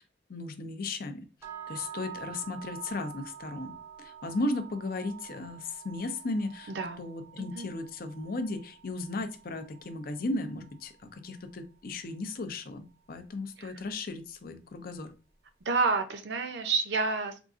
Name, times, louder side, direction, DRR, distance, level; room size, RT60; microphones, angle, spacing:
voice 1, 0.3-1.2 1.7-6.7 7.0-15.1, left 2 dB, 50° left, 8 dB, 0.5 m, -35 dB
sound 1, 1.4-11.5, right 8 dB, 15° right, 0.5 m, -47 dB
voice 2, 6.7-7.0 7.4-7.7 13.6-13.8 15.6-17.4, right 4 dB, 65° right, 8 dB, 0.5 m, -29 dB
3.8 x 2.4 x 2.4 m, 0.33 s
head